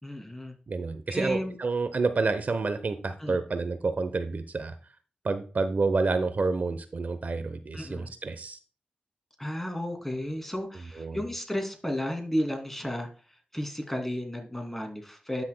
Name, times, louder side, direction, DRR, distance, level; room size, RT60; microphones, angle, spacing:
voice 1, 0.0-0.5 1.1-1.6 3.2-3.4 7.7-8.1 9.4-13.1 13.5-15.4, equal, 10° left, 4 dB, 2.6 m, -33 dB
voice 2, 0.7-4.7 5.2-8.6 11.0-11.2, right 3 dB, 55° right, 10 dB, 0.7 m, -29 dB
12.0 x 5.9 x 2.2 m, 0.38 s
cardioid pair, 45°, 3 cm